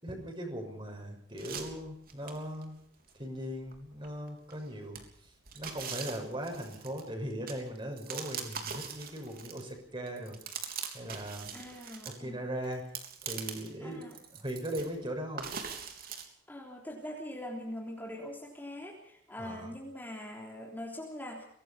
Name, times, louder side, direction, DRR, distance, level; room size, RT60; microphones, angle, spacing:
voice 1, 0.0-2.8 3.2-5.0 5.5-10.4 10.9-11.5 12.2-12.8 13.2-14.0 14.3-15.5 19.4-19.7, equal, 25° right, 3 dB, 6.4 m, -39 dB
sound 1, 1.4-2.6 3.1-3.2 3.7-4.6 4.9-9.8 10.1-12.2 12.6-13.7 14.0-14.9 15.4-16.3, right 7 dB, 55° right, 3.6 m, -42 dB
voice 2, 11.5-12.4 13.8-14.2 16.5-21.5, left 1 dB, 10° left, -1 dB, 3.4 m, -42 dB
24.0 x 18.5 x 5.8 m, 0.64 s
head